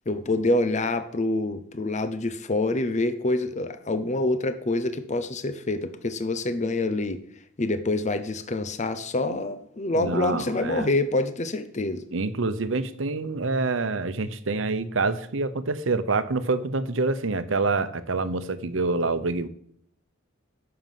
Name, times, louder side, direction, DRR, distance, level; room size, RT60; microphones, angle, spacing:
voice 1, 0.1-7.2 7.6-12.0, left 2 dB, 35° left, 10 dB, 0.7 m, -26 dB
voice 2, 10.0-10.9 12.1-19.5, right 3 dB, 70° right, 12 dB, 0.8 m, -26 dB
9.3 x 6.7 x 7.5 m, 0.66 s
head